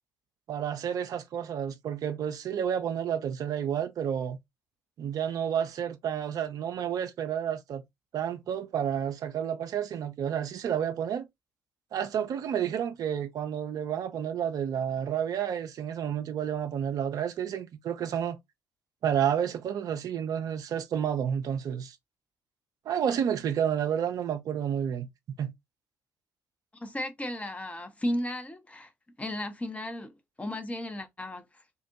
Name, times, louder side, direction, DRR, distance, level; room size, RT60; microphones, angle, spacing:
voice 1, 0.5-4.4 5.0-7.8 8.1-11.2 11.9-18.4 19.0-22.0 22.9-25.1 25.4-25.5, right 9 dB, 50° right, 0.4 m, -30 dB
voice 2, 26.7-28.9 29.2-30.1 30.4-31.4, left 1 dB, 15° left, 0.7 m, -34 dB
3.6 x 2.1 x 2.7 m
figure-of-eight pair, 50°, 8 cm